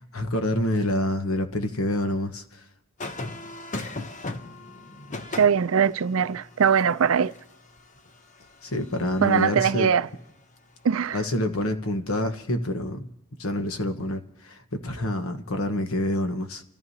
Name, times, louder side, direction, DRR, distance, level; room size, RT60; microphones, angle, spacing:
voice 1, 0.1-2.4 8.6-9.9 11.1-13.1 13.4-16.6, left 1 dB, 80° left, 1.3 m, -27 dB
sound 1, 3.0-9.4 11.1-11.4, left 2 dB, 35° left, 0.7 m, -38 dB
voice 2, 5.4-7.3 9.2-10.1 10.8-11.2, right 7 dB, 70° right, 0.4 m, -21 dB
29.5 x 14.0 x 2.8 m
head